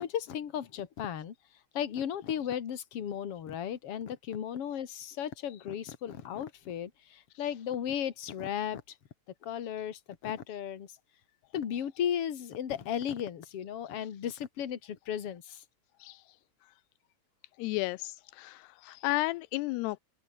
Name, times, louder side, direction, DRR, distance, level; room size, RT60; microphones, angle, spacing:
voice 1, 0.0-1.3 1.7-8.8 9.4-10.9 11.5-15.6, left 9 dB, 45° left, 2.4 m, -35 dB
voice 2, 17.6-20.0, left 20 dB, 85° left, 2.6 m, -33 dB
open air
omnidirectional pair, 4.7 m